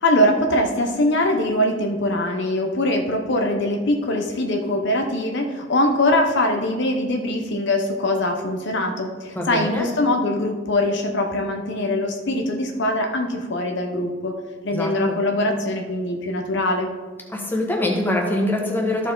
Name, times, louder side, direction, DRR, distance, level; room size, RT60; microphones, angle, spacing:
voice 1, 0.0-14.3 14.6-16.9, left 1 dB, 60° left, 3 dB, 0.8 m, -22 dB
voice 2, 9.3-9.9 14.7-15.2 17.3-19.1, left 1 dB, 10° left, -1 dB, 1.3 m, -24 dB
13.5 x 4.6 x 3.8 m, 1.5 s
head